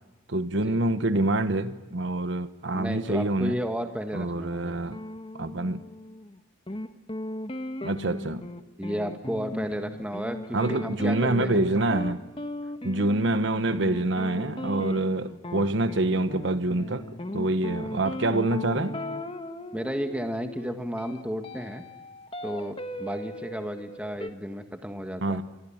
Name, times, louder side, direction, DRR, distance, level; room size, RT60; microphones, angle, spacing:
voice 1, 0.3-3.6 4.1-5.0 5.3-5.8 7.8-8.4 10.5-12.2 12.8-19.0 25.2-25.4, right 2 dB, 60° right, 1.0 m, -26 dB
voice 2, 2.7-4.7 8.8-11.6 17.8-17.9 19.7-21.8 22.4-25.4, equal, 5° right, 1.7 m, -33 dB
sound 1, 4.9-6.4 6.7-24.3, left 1 dB, 25° left, 1.2 m, -37 dB
26.0 x 25.0 x 8.8 m
head